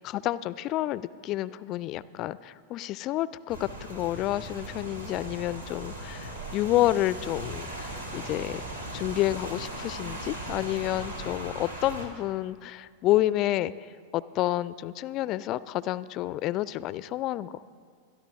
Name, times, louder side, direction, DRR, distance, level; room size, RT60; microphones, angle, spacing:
voice 1, 0.0-8.6 8.9-13.7 14.1-17.6, left 15 dB, 35° left, 19 dB, 0.4 m, -29 dB
Rain, 3.5-12.0, right 1 dB, 80° right, 2.2 m, -38 dB
21.5 x 13.0 x 3.6 m, 2.1 s
figure-of-eight pair, 90°, 0 cm